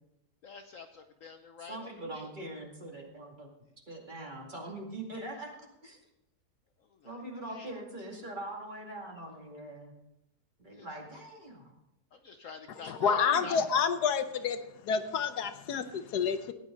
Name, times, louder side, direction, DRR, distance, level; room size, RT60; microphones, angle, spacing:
voice 1, 0.4-2.3 6.9-7.8 10.7-10.9 12.1-13.6, left 5 dB, 60° left, 6 dB, 1.0 m, -48 dB
voice 2, 1.7-3.5 3.9-5.6 5.8-6.0 7.0-9.9 10.6-11.7 12.8-13.6, right 1 dB, 30° right, -1 dB, 2.4 m, -42 dB
voice 3, 12.9-14.6 14.8-16.5, left 6 dB, 75° left, 10 dB, 1.3 m, -29 dB
17.0 x 9.7 x 3.9 m, 0.86 s
omnidirectional pair, 1.8 m